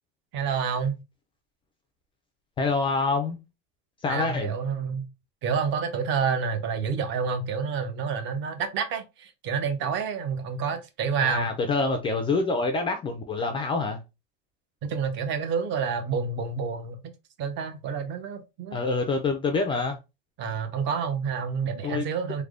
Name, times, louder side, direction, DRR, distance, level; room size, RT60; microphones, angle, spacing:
voice 1, 0.3-1.0 4.1-5.1 5.4-11.5 14.8-17.0 17.4-18.8 20.4-22.4, right 6 dB, 40° right, 0.7 m, -28 dB
voice 2, 2.6-3.4 4.0-4.5 11.2-14.0 18.7-20.0 21.8-22.0, left 3 dB, 20° left, 0.3 m, -26 dB
3.3 x 2.1 x 3.6 m
cardioid pair, 155°, 29 cm